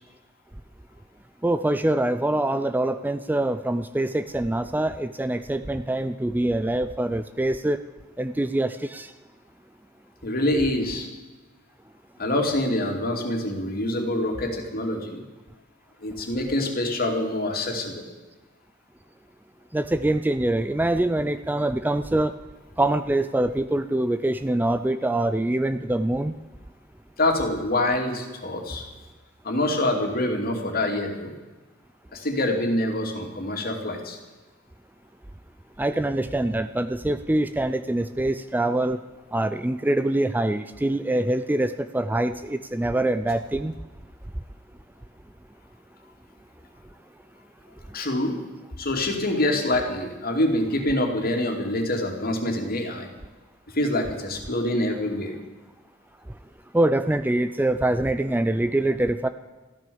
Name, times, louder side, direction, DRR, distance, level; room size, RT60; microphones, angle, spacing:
voice 1, 1.4-7.8 8.2-9.1 19.7-22.3 22.8-26.3 35.8-39.0 39.3-43.7 56.7-59.3, right 1 dB, 10° right, 11 dB, 0.4 m, -24 dB
voice 2, 10.2-11.1 12.2-15.2 16.0-18.0 27.2-28.9 29.4-31.3 32.1-34.2 47.9-48.4 48.8-53.1 53.7-55.3, left 1 dB, 50° left, 3 dB, 2.7 m, -25 dB
14.0 x 13.0 x 7.0 m, 1.2 s
head